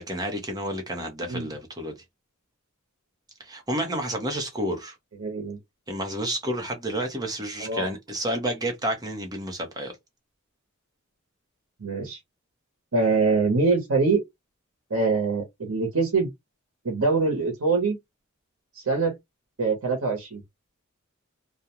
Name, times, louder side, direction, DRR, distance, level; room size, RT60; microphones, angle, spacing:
voice 1, 0.0-2.0 3.4-5.0 5.9-9.9, right 1 dB, 20° right, 0.7 m, -30 dB
voice 2, 5.2-5.6 7.6-7.9 11.8-12.2 12.9-14.2 14.9-16.3 16.8-18.0 18.7-19.2 19.6-20.4, right 4 dB, 90° right, 0.8 m, -24 dB
2.4 x 2.1 x 2.8 m
head